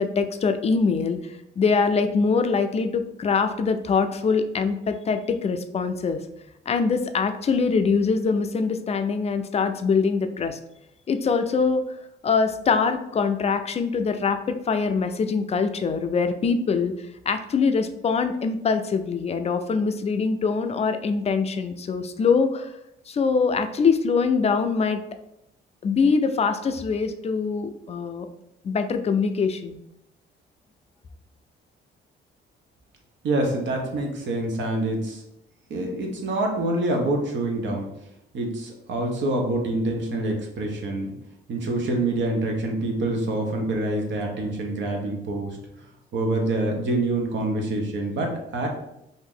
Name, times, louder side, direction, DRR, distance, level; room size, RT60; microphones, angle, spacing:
voice 1, 0.0-6.2 6.7-10.6 11.1-11.8 12.2-16.9 17.3-22.7 23.1-25.0 25.8-28.3 28.6-29.8, left 5 dB, 30° left, 8 dB, 0.4 m, -23 dB
voice 2, 33.2-35.2 35.7-37.8 38.3-41.1 41.5-45.6 46.1-48.7, right 2 dB, 65° right, 2 dB, 0.9 m, -26 dB
2.8 x 2.6 x 3.6 m, 0.82 s
cardioid pair, 90°, 20 cm